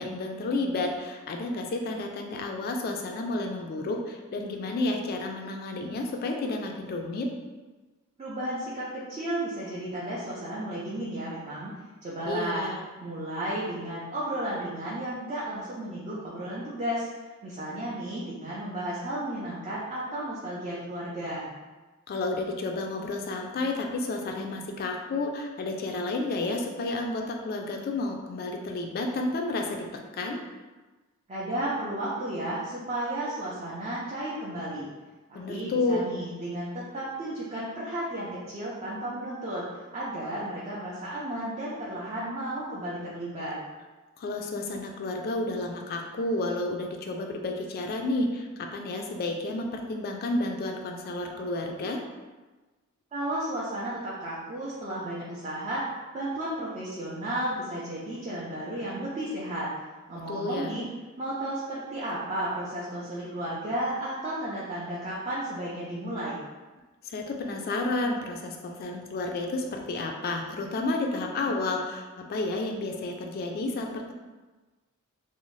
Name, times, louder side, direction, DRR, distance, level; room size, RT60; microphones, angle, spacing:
voice 1, 0.0-7.3 12.3-12.8 22.1-30.4 35.3-36.1 44.2-52.0 60.3-60.7 67.0-74.1, left 2 dB, 45° left, 2 dB, 0.3 m, -31 dB
voice 2, 8.2-11.7 12.0-12.7 13.0-17.1 17.4-21.5 31.3-34.9 35.5-43.6 53.1-55.8 56.1-59.7 60.1-60.8 61.2-66.4, right 1 dB, 30° right, -7 dB, 0.4 m, -33 dB
2.6 x 2.0 x 3.0 m, 1.2 s
head